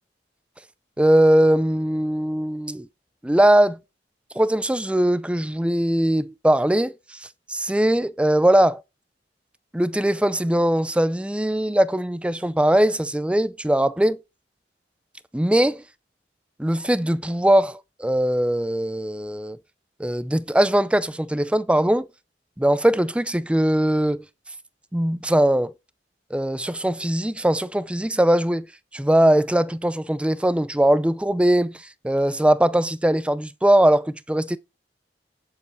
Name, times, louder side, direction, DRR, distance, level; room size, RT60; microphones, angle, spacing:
voice 1, 1.0-2.9 3.2-3.8 4.3-8.8 9.7-14.2 15.3-15.8 16.6-19.6 20.0-22.1 22.6-24.2 24.9-25.7 26.3-34.6, right 1 dB, 5° right, 0.4 m, -20 dB
9.9 x 6.9 x 4.5 m
head